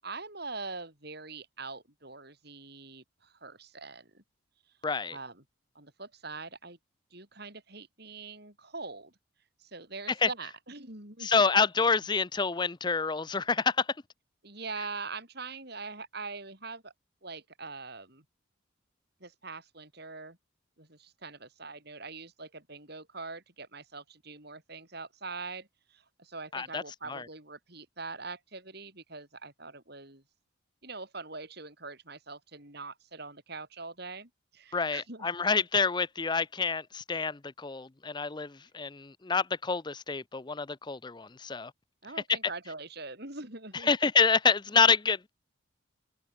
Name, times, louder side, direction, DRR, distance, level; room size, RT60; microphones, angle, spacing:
voice 1, 0.0-4.2 5.1-5.4 5.8-6.8 7.1-9.2 9.6-11.3 14.4-16.9 17.2-18.2 19.2-20.4 20.8-30.2 30.8-35.3 42.0-43.9, right 3 dB, 50° right, 7.1 m, -43 dB
voice 2, 4.8-5.2 10.2-10.3 11.2-13.9 26.5-26.8 27.1-27.2 34.7-41.7 43.8-45.3, left 5 dB, 20° left, 0.5 m, -27 dB
open air
head